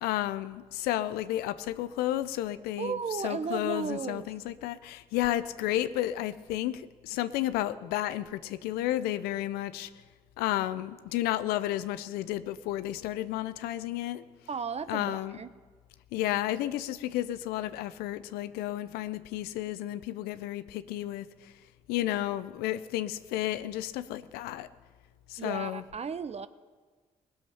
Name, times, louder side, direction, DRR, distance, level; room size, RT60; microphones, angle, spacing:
voice 1, 0.0-3.0 3.2-9.9 10.4-14.2 14.9-15.4 16.1-21.5 21.9-24.7 25.3-25.8, left 14 dB, 80° left, 14 dB, 0.5 m, -32 dB
voice 2, 2.8-4.3 14.5-15.5 25.4-26.5, right 5 dB, 40° right, 13 dB, 0.8 m, -34 dB
20.5 x 7.2 x 5.7 m, 1.4 s
hypercardioid pair, 45°, 16 cm